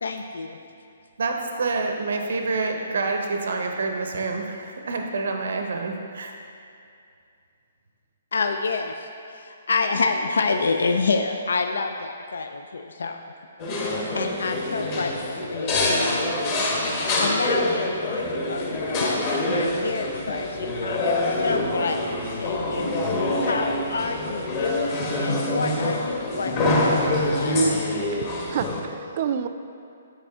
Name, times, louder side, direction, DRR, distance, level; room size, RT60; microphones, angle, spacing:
voice 1, 0.0-0.6 8.3-9.1 9.3-13.2 14.2-16.2 16.9-22.9 23.4-27.7, left 4 dB, 85° left, 0.3 m, -28 dB
voice 2, 1.2-6.3, right 3 dB, 75° right, 0.7 m, -27 dB
sound 1, 13.6-28.8, left 1 dB, 30° left, 1.0 m, -25 dB
voice 3, 28.2-29.5, right 8 dB, 40° right, 0.3 m, -29 dB
9.6 x 4.2 x 3.5 m
hypercardioid pair, 160°, 0 cm